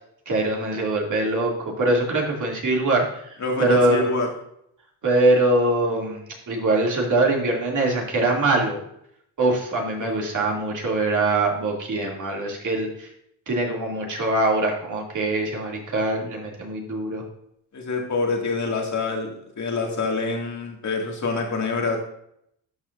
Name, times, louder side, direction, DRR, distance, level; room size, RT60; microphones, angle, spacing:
voice 1, 0.3-3.0 3.6-4.1 5.0-6.2 6.5-8.8 9.4-13.1 13.5-17.2, right 2 dB, 40° right, -1 dB, 2.8 m, -22 dB
voice 2, 3.4-4.3 10.0-10.1 17.7-22.0, left 3 dB, 35° left, 1 dB, 2.4 m, -26 dB
12.5 x 5.9 x 2.6 m, 0.73 s
cardioid pair, 90°, 46 cm